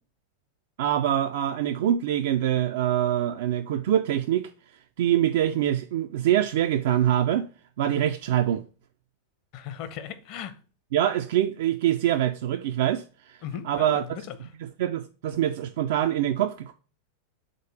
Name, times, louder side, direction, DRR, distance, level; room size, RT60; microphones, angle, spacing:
voice 1, 0.8-4.5 5.0-7.5 7.8-8.6 10.9-13.4 13.7-14.0 14.8-16.7, right 11 dB, 55° right, 0.4 m, -24 dB
voice 2, 9.5-10.6 13.4-14.5, left 8 dB, 45° left, 0.9 m, -37 dB
5.2 x 3.9 x 5.1 m
figure-of-eight pair, 90°, 0 cm